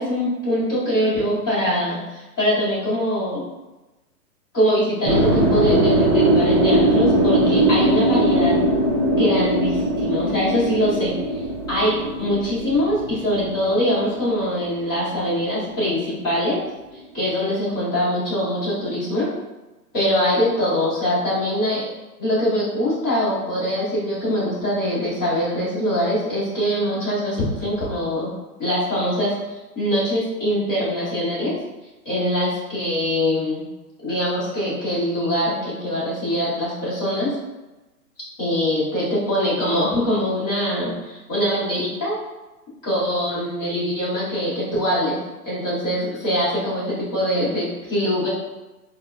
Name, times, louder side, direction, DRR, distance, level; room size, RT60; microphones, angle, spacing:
voice 1, 0.0-3.4 4.5-8.6 9.1-11.4 11.7-16.6 17.1-19.3 19.9-21.8 22.2-28.3 28.6-31.5 32.0-33.6 34.0-37.4 38.4-42.2 42.8-45.2 45.4-48.3, equal, 15° left, -11 dB, 0.9 m, -23 dB
sound 1, 5.0-15.2, right 1 dB, 25° right, 0.5 m, -20 dB
4.4 x 2.1 x 2.4 m, 1.1 s
hypercardioid pair, 170°, 48 cm